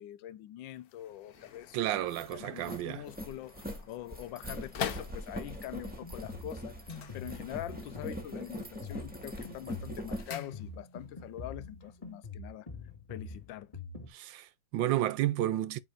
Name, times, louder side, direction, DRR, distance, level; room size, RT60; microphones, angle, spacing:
voice 1, 0.0-2.0 2.3-6.8 7.1-12.7 13.1-13.8, left 13 dB, 85° left, 1.3 m, -44 dB
sound 1, 0.7-5.7 6.8-7.9 8.2-8.7 9.0-11.1 11.4-11.5, left 8 dB, 60° left, 1.2 m, -45 dB
sound 2, 1.5-1.6 1.9-10.3, equal, 5° right, 1.9 m, -42 dB
voice 2, 1.7-3.0 14.1-15.8, right 14 dB, 90° right, 1.4 m, -31 dB
Drum kit, 5.8-14.1, left 3 dB, 20° left, 2.1 m, -45 dB
9.0 x 3.3 x 3.8 m
omnidirectional pair, 2.0 m